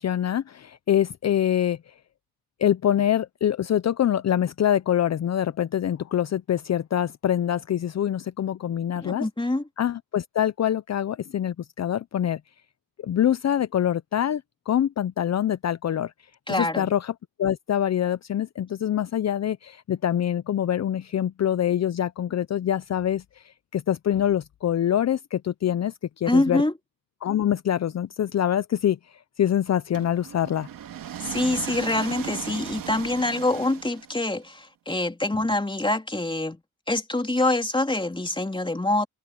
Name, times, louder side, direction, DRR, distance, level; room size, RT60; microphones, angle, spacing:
voice 1, 0.0-1.9 2.6-9.3 9.8-12.4 13.0-16.1 16.5-17.1 17.4-26.6 27.2-30.7, left 10 dB, 55° left, 0.7 m, -25 dB
voice 2, 9.0-9.6 16.5-16.9 26.3-26.7 31.2-36.6 36.9-39.1, left 2 dB, 15° left, 3.3 m, -25 dB
sound 1, 29.9-34.3, right 10 dB, 80° right, 2.7 m, -37 dB
cardioid pair, 65°, 33 cm